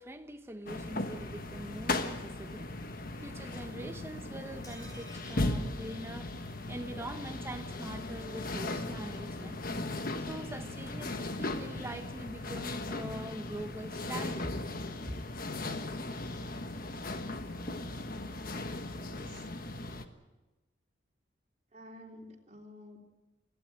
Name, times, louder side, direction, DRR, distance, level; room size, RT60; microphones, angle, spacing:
voice 1, 0.0-9.7 10.2-14.6 15.0-15.2, right 1 dB, 15° right, 1.3 m, -43 dB
sound 1, 0.7-20.0, left 2 dB, 50° left, 1.4 m, -37 dB
sound 2, 4.6-6.6 6.9-7.0 7.3-7.4, left 1 dB, 20° left, 3.8 m, -55 dB
voice 2, 19.0-19.5 21.7-23.0, left 1 dB, 40° right, 3.3 m, -51 dB
21.5 x 15.5 x 9.0 m
head